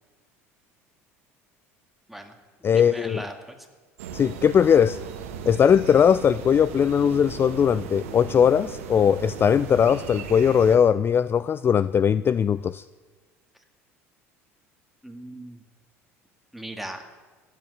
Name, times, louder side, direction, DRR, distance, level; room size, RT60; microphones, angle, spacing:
voice 1, 2.1-3.6 15.0-15.6 16.5-17.0, right 1 dB, ahead, 4 dB, 2.3 m, -38 dB
voice 2, 2.6-3.2 4.1-5.0 5.5-12.8, left 8 dB, 30° left, 17 dB, 0.4 m, -20 dB
sound 1, 4.0-10.8, right 7 dB, 80° right, 1.5 m, -37 dB
15.5 x 8.1 x 9.4 m, 1.3 s
hypercardioid pair, 70°, 7 cm